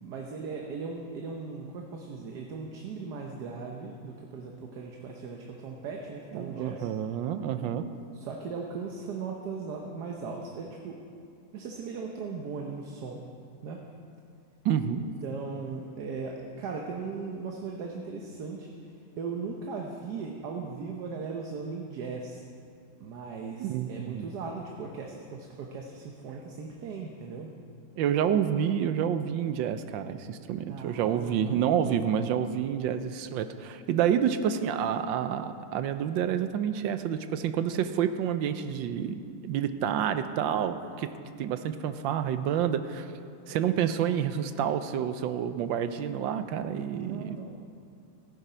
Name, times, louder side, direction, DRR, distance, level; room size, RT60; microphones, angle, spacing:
voice 1, 0.0-6.9 8.1-11.0 11.5-13.2 13.6-13.8 15.0-18.7 19.2-22.4 23.0-27.5 30.7-32.1 46.9-47.6, right 4 dB, 60° right, 1 dB, 1.4 m, -38 dB
voice 2, 6.3-7.8 14.6-15.0 23.6-24.3 28.0-41.1 41.4-43.1 43.5-47.4, right 9 dB, 80° right, 10 dB, 1.4 m, -29 dB
15.5 x 9.2 x 5.6 m, 2.4 s
omnidirectional pair, 2.1 m